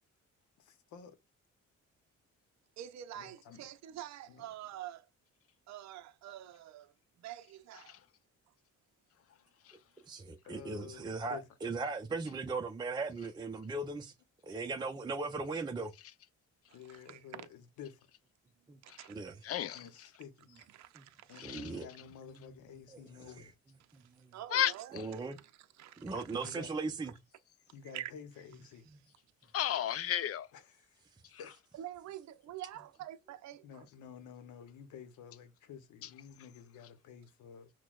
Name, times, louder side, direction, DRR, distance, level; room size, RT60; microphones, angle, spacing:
voice 1, 0.6-1.2 3.1-3.7 4.3-4.5 10.4-11.4 16.7-18.0 19.7-20.5 21.3-23.5 26.3-26.7 27.7-28.9 30.5-31.5 32.7-32.8 33.6-37.7, left 7 dB, 80° left, 0.8 m, -51 dB
voice 2, 2.8-5.1 5.7-8.0 16.7-17.5 18.8-19.2 20.7-21.4 23.9-26.6 27.9-28.1 31.7-33.9, right 12 dB, 65° right, 0.5 m, -47 dB
voice 3, 10.1-14.1 14.4-15.9 18.7-18.8 19.1-19.3 21.0-21.1 21.4-21.9 22.9-23.5 23.9-24.3 24.9-25.4 26.0-27.1 28.9-29.0, right 3 dB, 15° right, 0.5 m, -38 dB
voice 4, 19.4-19.9 21.4-21.7 24.5-24.7 29.5-30.5 31.3-31.4, left 10 dB, 50° left, 0.4 m, -32 dB
6.0 x 2.2 x 2.3 m
cardioid pair, 90°, 30 cm